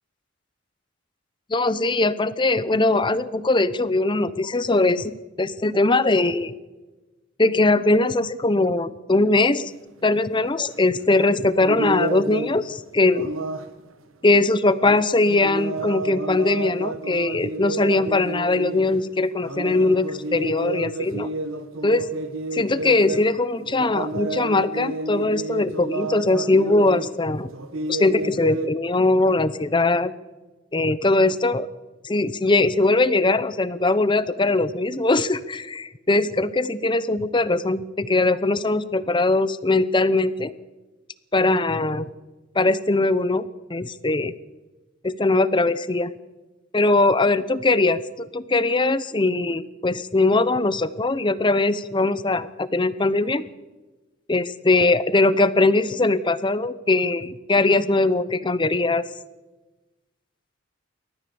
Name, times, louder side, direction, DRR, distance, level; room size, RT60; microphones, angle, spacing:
voice 1, 1.5-5.1 5.4-6.5 7.4-9.7 10.0-13.3 14.2-21.3 21.8-22.0 22.5-27.5 27.9-30.1 30.7-31.7 32.0-40.5 41.3-42.0 42.5-44.3 45.0-46.1 46.7-53.4 54.3-59.0, left 2 dB, 25° left, 15 dB, 0.8 m, -21 dB
sound 1, 10.1-10.2 10.5-11.0 11.6-12.7 13.1-13.8 14.7-19.0 19.4-23.4 23.6-27.1 27.5-28.7, right 2 dB, 85° right, 1.5 m, -31 dB
28.5 x 13.5 x 7.0 m, 1.2 s
head